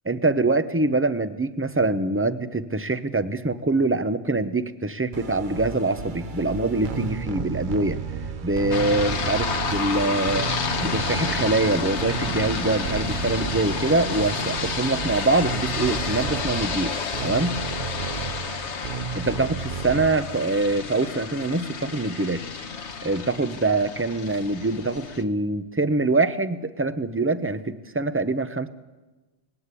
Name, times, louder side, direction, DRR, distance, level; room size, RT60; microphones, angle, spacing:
voice 1, 0.1-8.0 8.4-10.5 10.8-16.9 17.2-17.6 19.1-22.4 23.0-28.7, right 2 dB, 15° right, 11 dB, 0.7 m, -24 dB
sound 1, 5.1-20.5, right 6 dB, 50° right, 0.9 m, -32 dB
sound 2, 8.7-25.2, left 5 dB, 80° left, 1.5 m, -30 dB
20.0 x 18.0 x 8.4 m, 1.2 s
omnidirectional pair, 1.2 m